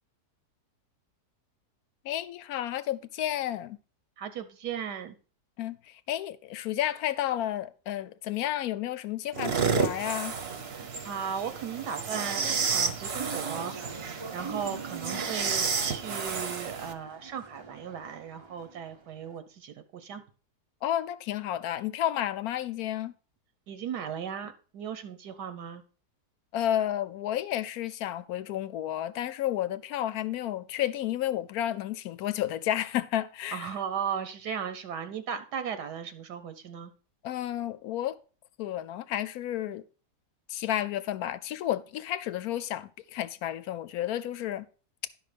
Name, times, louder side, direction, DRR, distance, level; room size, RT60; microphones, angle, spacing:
voice 1, 2.0-3.8 5.6-10.3 20.8-23.1 26.5-33.8 37.2-38.2 38.6-39.8 40.5-44.7, left 12 dB, 70° left, 1.0 m, -31 dB
voice 2, 4.2-5.1 10.7-13.8 14.3-20.2 23.7-25.8 33.5-36.9, right 7 dB, 85° right, 1.5 m, -36 dB
sound 1, 9.3-16.9, right 5 dB, 45° right, 1.0 m, -31 dB
sound 2, 12.1-19.3, right 4 dB, 30° right, 0.5 m, -43 dB
11.0 x 5.6 x 5.1 m
omnidirectional pair, 1.7 m